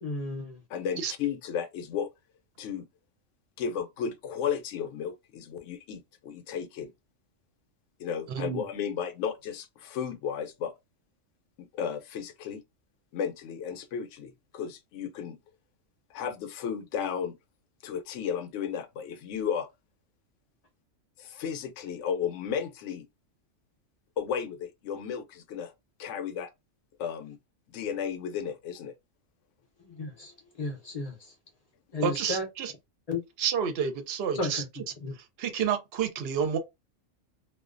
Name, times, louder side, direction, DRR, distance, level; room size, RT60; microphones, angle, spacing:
voice 1, 0.0-0.6 29.9-30.3 30.6-31.2 31.9-32.5 33.1-33.2 34.3-34.7 35.0-35.1, left 2 dB, 45° left, 0.5 m, -33 dB
voice 2, 0.7-2.1 2.6-2.9 3.6-6.9 8.0-10.7 11.6-12.6 13.1-15.4 16.1-17.4 17.8-19.7 21.2-23.1 24.2-25.7 26.0-26.5 27.0-27.4 27.7-28.9, left 7 dB, 70° left, 0.8 m, -34 dB
voice 3, 32.0-32.7 33.4-34.8 35.4-36.6, right 7 dB, 60° right, 0.7 m, -29 dB
2.3 x 2.2 x 2.4 m
omnidirectional pair, 1.4 m